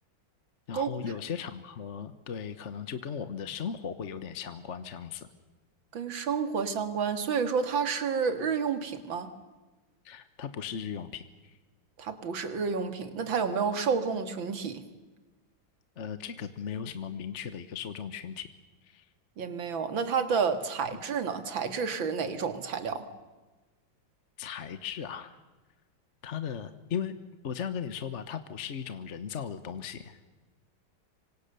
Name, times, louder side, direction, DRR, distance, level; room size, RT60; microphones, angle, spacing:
voice 1, 0.7-5.3 10.0-11.5 16.0-18.5 18.8-19.0 24.4-25.4 26.2-27.2 27.4-30.2, left 7 dB, 45° left, 11 dB, 1.1 m, -37 dB
voice 2, 5.9-9.3 12.0-14.8 19.4-23.0, right 6 dB, 75° right, 9 dB, 2.7 m, -30 dB
25.5 x 25.5 x 6.8 m, 1.2 s
omnidirectional pair, 2.2 m